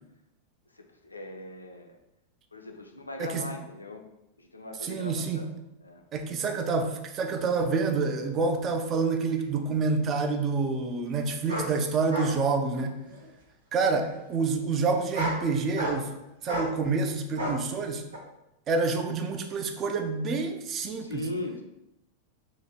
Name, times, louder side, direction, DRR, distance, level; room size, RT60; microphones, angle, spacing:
voice 1, 0.7-2.0 2.5-4.1 4.4-5.6 5.8-6.0 21.0-21.6, left 2 dB, 80° left, 4 dB, 0.5 m, -39 dB
voice 2, 4.8-5.4 6.1-13.0 13.7-16.1 16.4-18.0 18.7-21.3, right 4 dB, 30° right, 5 dB, 0.5 m, -28 dB
sound 1, 9.4-9.5 11.5-11.7 12.1-12.3 12.7-13.2 14.0-14.1 14.9-15.4 15.7-16.1 16.5-16.7 17.4-17.6 18.1-18.2, right 1 dB, 75° right, 0.8 m, -32 dB
3.0 x 2.8 x 4.1 m, 0.89 s
figure-of-eight pair, 90°, 0 cm